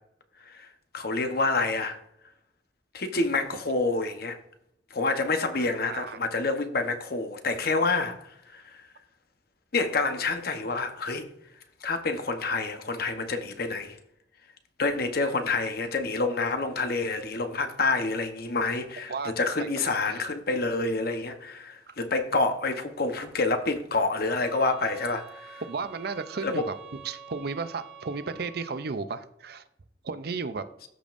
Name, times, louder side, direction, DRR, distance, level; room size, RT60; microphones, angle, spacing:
voice 1, 0.9-2.0 2.9-4.4 4.9-8.2 8.5-8.6 9.7-11.3 11.8-13.9 14.8-25.6 26.4-26.6, left 3 dB, 60° left, 1.0 m, -28 dB
voice 2, 5.9-6.2 19.1-19.3 20.1-20.2 21.9-22.0 25.6-26.7 27.0-29.6 30.0-30.6, right 4 dB, 60° right, 0.5 m, -33 dB
sound 1, 24.2-29.0, right 6 dB, 5° right, 2.4 m, -47 dB
13.5 x 5.2 x 2.6 m
head